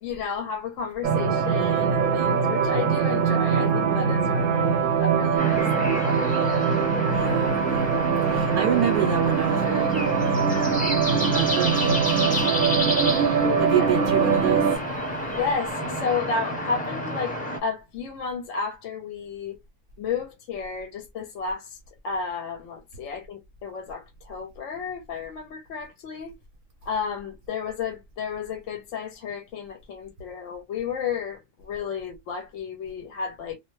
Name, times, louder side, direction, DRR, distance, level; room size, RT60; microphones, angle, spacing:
voice 1, 0.0-6.6 13.4-13.9 15.3-19.6 20.0-21.8 22.0-26.3 26.8-33.6, left 6 dB, 65° left, 0.8 m, -32 dB
sound 1, 1.0-14.8, right 6 dB, 85° right, 1.1 m, -23 dB
sound 2, 5.4-17.6, equal, 5° left, 0.7 m, -29 dB
voice 2, 7.1-7.9 8.2-10.6 11.2-12.6 13.2-14.8, right 7 dB, 65° right, 0.9 m, -28 dB
2.4 x 2.1 x 3.0 m
omnidirectional pair, 1.5 m